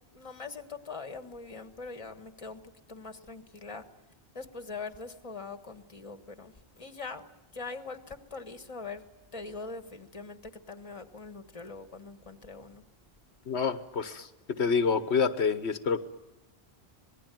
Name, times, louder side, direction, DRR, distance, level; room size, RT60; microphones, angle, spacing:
voice 1, 0.1-2.6 2.9-3.8 4.3-9.0 9.3-12.8, left 4 dB, 30° left, 8 dB, 1.6 m, -42 dB
voice 2, 13.5-16.0, left 5 dB, 85° left, 10 dB, 1.4 m, -28 dB
26.5 x 20.0 x 9.2 m, 1.0 s
omnidirectional pair, 1.1 m